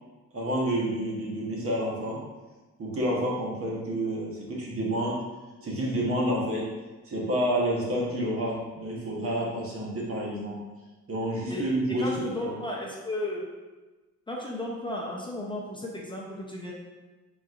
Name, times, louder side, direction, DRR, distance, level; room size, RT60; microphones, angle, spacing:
voice 1, 0.3-2.3 2.8-5.2 5.6-6.8 7.0-10.6 11.1-12.6, right 1 dB, 50° right, -4 dB, 1.2 m, -29 dB
voice 2, 11.5-13.5 14.3-16.7, left 1 dB, 15° left, -3 dB, 0.7 m, -34 dB
4.0 x 3.8 x 2.5 m, 1.2 s
cardioid pair, 90°, 30 cm